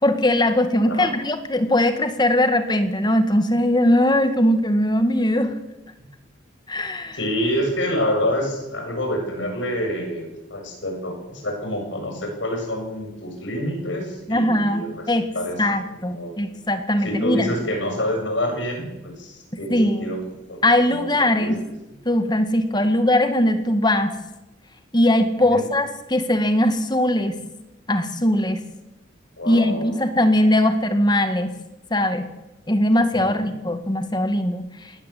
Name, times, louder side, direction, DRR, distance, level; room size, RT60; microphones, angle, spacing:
voice 1, 0.0-5.5 6.7-7.2 14.3-15.3 15.6-17.5 19.7-20.0 20.6-21.6 22.1-24.2 24.9-27.4 27.9-28.6 29.5-31.5 31.9-32.2 32.7-34.6, left 1 dB, 20° left, 8 dB, 1.9 m, -20 dB
voice 2, 7.1-15.1 15.3-15.6 16.1-16.4 17.0-20.2 20.5-21.7 22.7-23.0 25.5-25.6 29.4-29.9 33.2-33.5, equal, 75° left, 2 dB, 7.6 m, -27 dB
19.0 x 18.0 x 8.5 m, 0.98 s
head